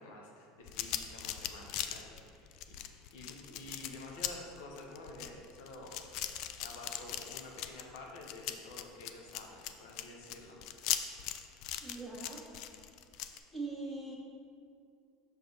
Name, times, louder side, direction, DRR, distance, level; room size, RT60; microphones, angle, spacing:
voice 1, 0.0-2.6 2.9-6.2 6.6-10.9, left 2 dB, 80° left, 0 dB, 1.2 m, -50 dB
sound 1, 0.7-13.4, left 11 dB, 60° left, 0.4 m, -39 dB
voice 2, 11.8-12.4 13.5-14.2, right 3 dB, 5° left, -3 dB, 1.4 m, -41 dB
6.3 x 5.3 x 4.0 m, 2.4 s
supercardioid pair, 105°, 0 cm